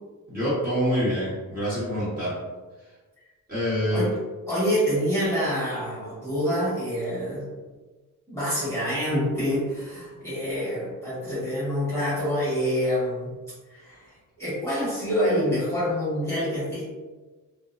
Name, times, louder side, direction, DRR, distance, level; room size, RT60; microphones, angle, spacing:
voice 1, 0.3-2.4 3.5-4.1, equal, 25° right, -11 dB, 1.3 m, -26 dB
voice 2, 4.5-7.4 8.3-13.3 13.7-14.0 14.4-16.9, equal, 10° left, -11 dB, 1.3 m, -26 dB
2.5 x 2.2 x 2.4 m, 1.3 s
cardioid pair, 140°, 32 cm